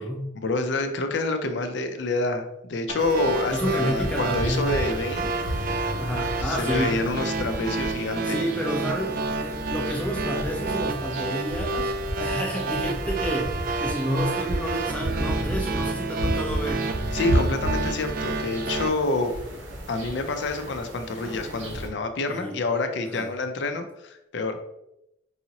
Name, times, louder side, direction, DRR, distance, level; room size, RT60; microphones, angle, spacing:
voice 1, 0.4-5.3 6.4-8.4 17.1-19.3 19.9-24.6, left 2 dB, 65° left, 7 dB, 0.5 m, -27 dB
sound 1, 2.9-18.9, right 3 dB, 45° right, 0.3 m, -30 dB
sound 2, 3.0-21.9, right 1 dB, 85° right, 1.1 m, -33 dB
voice 2, 3.5-4.7 6.0-7.0 8.2-11.9 12.2-16.9 22.3-22.5 23.0-23.3, equal, 5° left, -1 dB, 0.5 m, -29 dB
4.7 x 2.8 x 2.8 m, 0.84 s
head